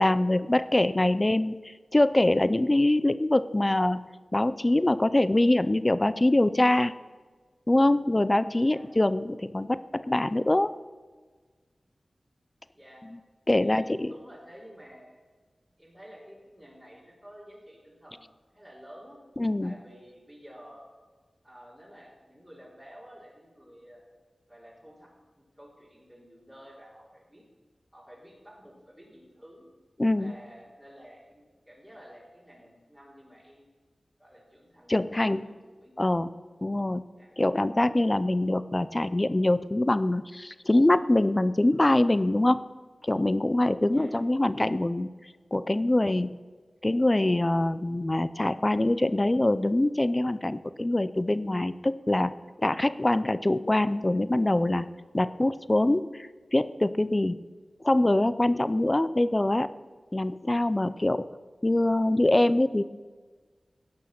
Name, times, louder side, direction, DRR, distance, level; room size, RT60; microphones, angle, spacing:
voice 1, 0.0-4.0 4.3-6.9 7.7-10.7 13.5-14.1 19.4-19.7 30.0-30.3 34.9-35.4 36.0-36.3 36.6-37.0 37.4-42.6 43.0-45.1 45.5-46.4 46.8-52.3 52.6-54.9 55.1-57.4 57.8-59.7 60.1-61.2 61.6-62.8, left 1 dB, 25° left, 14 dB, 0.5 m, -24 dB
voice 2, 12.7-13.1 13.6-15.2 15.8-19.2 19.6-20.9 21.4-24.0 24.5-25.1 25.4-27.4 27.9-29.6 30.2-33.7 34.2-35.9 37.1-37.3 43.9-44.1, equal, 10° right, -7 dB, 3.7 m, -51 dB
16.5 x 6.2 x 5.9 m, 1.4 s
wide cardioid pair, 65°, 0 cm